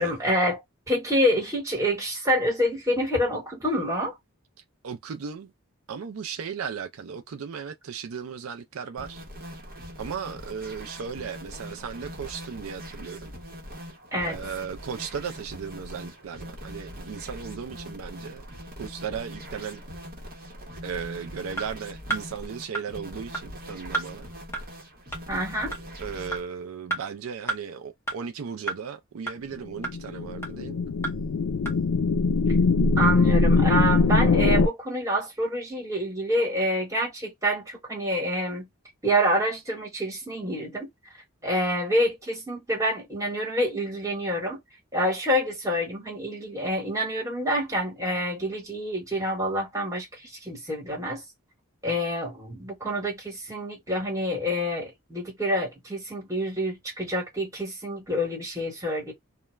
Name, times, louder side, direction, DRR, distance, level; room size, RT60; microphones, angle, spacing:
voice 1, 0.0-4.1 14.1-14.4 25.3-25.7 33.0-38.7 39.0-40.9 41.4-44.6 44.9-51.2 51.8-59.1, equal, 15° right, 1.2 m, -27 dB
voice 2, 4.8-5.5 5.9-9.2 10.0-13.3 14.2-18.4 18.8-19.8 20.8-24.3 26.0-30.8, right 6 dB, 75° right, 0.4 m, -36 dB
sound 1, 9.0-26.4, equal, 45° right, 0.8 m, -42 dB
sound 2, 21.6-21.7 22.1-22.2 22.7-22.8 23.3-23.4 23.9-24.1 24.5-24.6 25.1-25.2 25.7-25.8 26.3-26.4 26.9-27.0 27.5-27.6 28.1-28.2 28.7-28.8 29.3-29.4 29.8-29.9 30.4-30.5 31.0-31.1 31.7-31.8, right 3 dB, 10° left, 0.7 m, -29 dB
sound 3, 29.8-34.7, left 3 dB, 75° left, 0.4 m, -22 dB
2.3 x 2.1 x 3.0 m
head